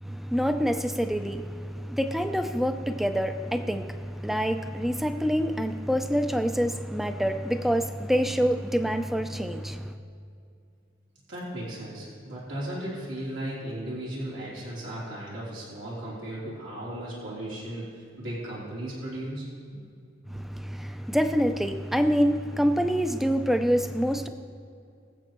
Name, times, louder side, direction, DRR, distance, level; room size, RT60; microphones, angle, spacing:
voice 1, 0.0-9.9 20.3-24.3, equal, ahead, 0.5 m, -26 dB
voice 2, 11.3-17.9 18.2-19.5, right 1 dB, 90° right, 3.4 m, -36 dB
22.5 x 7.6 x 3.1 m
head